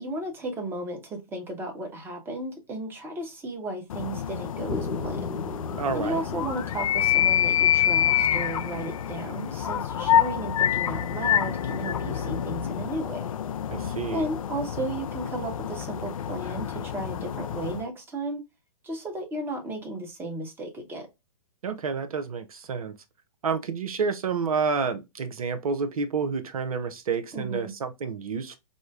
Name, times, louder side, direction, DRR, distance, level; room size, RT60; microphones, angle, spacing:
voice 1, 0.0-5.2 5.9-13.2 14.1-18.4 18.8-21.1 27.3-27.7, right 2 dB, 10° right, 0.9 m, -34 dB
sound 1, 3.9-17.8, left 10 dB, 60° left, 0.4 m, -27 dB
sound 2, 4.7-8.6, left 3 dB, 90° left, 1.8 m, -37 dB
voice 2, 5.8-6.2 13.7-14.2 21.6-23.0 23.4-28.6, right 5 dB, 65° right, 0.6 m, -29 dB
5.0 x 2.1 x 2.3 m
figure-of-eight pair, 120°, 20 cm